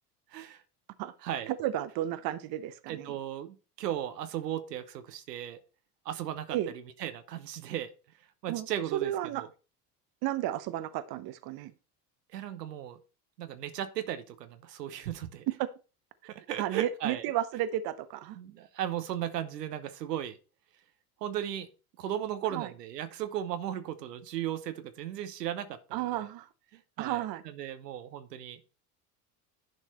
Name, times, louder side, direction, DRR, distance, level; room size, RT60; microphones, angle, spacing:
voice 1, 0.3-0.6 1.2-1.5 2.9-5.6 6.0-7.9 8.4-9.5 12.3-13.0 13.4-15.5 16.3-17.2 18.4-20.4 21.2-21.7 22.0-25.8 26.1-26.2 26.7-28.6, right 11 dB, 85° right, 1.1 m, -36 dB
voice 2, 1.6-3.1 6.5-6.7 8.5-8.7 8.9-9.4 10.2-11.7 16.6-18.4 22.5-22.7 25.9-26.5 27.0-27.4, right 13 dB, 50° right, 0.9 m, -32 dB
10.5 x 4.6 x 4.3 m
hypercardioid pair, 80°, 47 cm